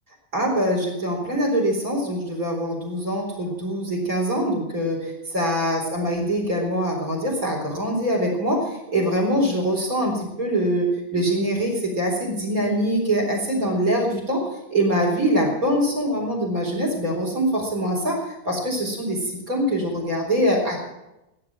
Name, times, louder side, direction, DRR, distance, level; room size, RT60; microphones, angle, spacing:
voice 1, 0.3-5.0 5.3-8.6 8.9-14.4 14.7-18.2 18.4-20.8, equal, 85° right, 0 dB, 4.7 m, -23 dB
17.0 x 10.5 x 7.4 m, 0.91 s
omnidirectional pair, 1.5 m